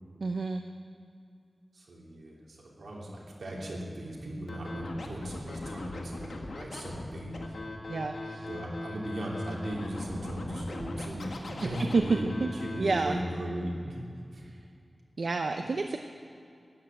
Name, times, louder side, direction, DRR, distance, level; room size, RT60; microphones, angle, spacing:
voice 1, 0.2-0.6 7.9-8.5 11.8-12.5 12.8-13.1 15.2-16.0, right 3 dB, 65° right, 5 dB, 0.7 m, -29 dB
voice 2, 1.7-7.4 8.4-14.0 14.3-14.4, right 1 dB, 85° right, -3 dB, 3.3 m, -37 dB
Scratching (performance technique), 4.5-13.0, left 2 dB, 80° left, 1.7 m, -40 dB
12.5 x 11.0 x 7.6 m, 2.4 s
wide cardioid pair, 100°, 0 cm